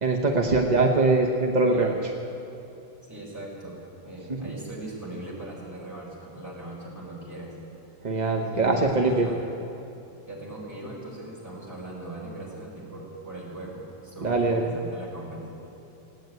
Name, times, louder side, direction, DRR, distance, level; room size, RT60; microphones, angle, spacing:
voice 1, 0.0-2.1 8.0-9.3 14.2-14.7, right 3 dB, 45° right, 1 dB, 0.5 m, -22 dB
voice 2, 1.6-2.0 3.1-3.8 4.0-7.5 8.5-9.4 10.3-15.5, right 1 dB, 10° right, -6 dB, 4.6 m, -39 dB
17.0 x 9.3 x 9.1 m, 2.7 s
omnidirectional pair, 2.2 m